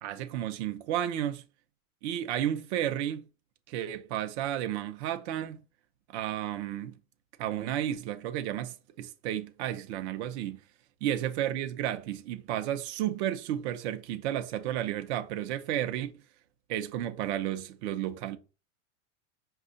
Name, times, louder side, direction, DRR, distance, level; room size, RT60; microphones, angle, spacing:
voice 1, 0.0-1.4 2.0-3.2 3.7-5.6 6.1-6.9 7.4-10.6 11.0-16.1 16.7-18.4, right 11 dB, 60° right, 0.7 m, -32 dB
5.4 x 2.4 x 3.8 m
supercardioid pair, 135°, 38 cm